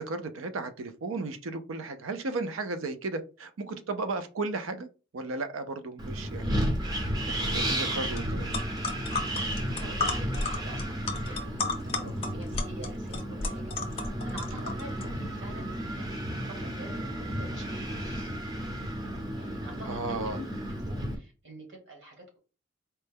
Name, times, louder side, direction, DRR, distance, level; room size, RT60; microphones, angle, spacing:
voice 1, 0.0-4.9 5.1-7.0 7.3-8.6 12.0-12.1 14.5-14.7 19.9-20.4, right 3 dB, 80° right, 0.5 m, -35 dB
Wind, 6.0-21.1, equal, 20° right, 0.5 m, -33 dB
sound 1, 8.2-8.3 8.5-15.0, left 3 dB, 30° left, 0.6 m, -33 dB
voice 2, 9.7-13.7 14.0-18.3 19.3-20.4 20.9-22.4, right 1 dB, 65° right, 1.5 m, -47 dB
4.3 x 2.1 x 3.4 m
head